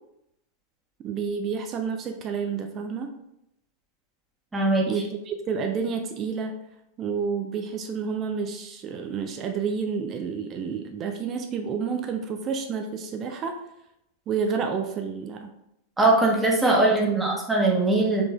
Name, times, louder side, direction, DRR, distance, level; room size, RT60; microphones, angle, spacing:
voice 1, 1.0-3.1 4.9-6.6 7.0-13.6 14.3-15.5 16.8-17.3, right 6 dB, 30° right, 5 dB, 0.4 m, -29 dB
voice 2, 4.5-4.9 16.0-18.2, right 2 dB, 10° right, -1 dB, 1.1 m, -21 dB
4.9 x 3.6 x 2.4 m, 0.81 s
figure-of-eight pair, 90°, 0 cm